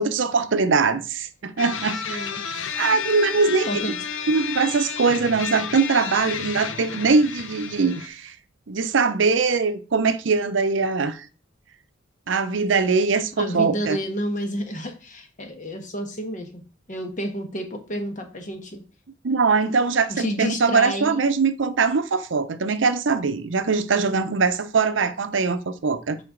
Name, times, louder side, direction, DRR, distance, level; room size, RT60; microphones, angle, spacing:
voice 1, 0.0-2.2 2.8-3.8 4.3-8.3 8.7-11.3 12.3-14.0 19.2-26.2, right 4 dB, 75° right, 0.6 m, -22 dB
sound 1, 1.6-8.1, left 7 dB, 85° left, 0.7 m, -31 dB
voice 2, 2.1-2.8 3.6-4.0 13.4-16.6 16.9-18.8 20.1-21.2, equal, 40° left, 1.3 m, -30 dB
7.7 x 5.2 x 3.8 m
head